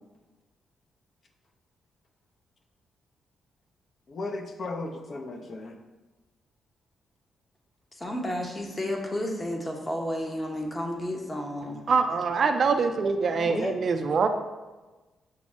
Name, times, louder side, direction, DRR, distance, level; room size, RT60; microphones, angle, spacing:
voice 1, 4.1-5.8 13.4-13.8, left 3 dB, 55° left, 4 dB, 0.5 m, -35 dB
voice 2, 8.0-11.8, left 1 dB, 25° left, 2 dB, 0.8 m, -32 dB
voice 3, 11.9-14.3, right 5 dB, 60° right, 7 dB, 0.3 m, -24 dB
6.0 x 2.0 x 3.5 m, 1.2 s
supercardioid pair, 65°, 0 cm